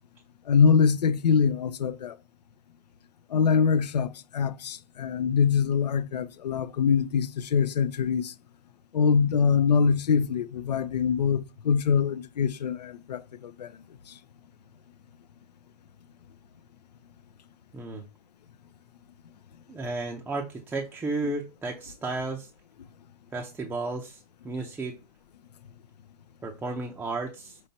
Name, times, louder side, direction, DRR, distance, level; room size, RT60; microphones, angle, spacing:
voice 1, 0.5-2.2 3.3-8.3 8.9-13.7, left 6 dB, 80° left, 0.5 m, -24 dB
voice 2, 17.7-18.0 19.7-22.5 23.3-25.0 26.4-27.6, right 3 dB, 10° right, 0.5 m, -33 dB
5.5 x 3.1 x 2.7 m
hypercardioid pair, 130°, 21 cm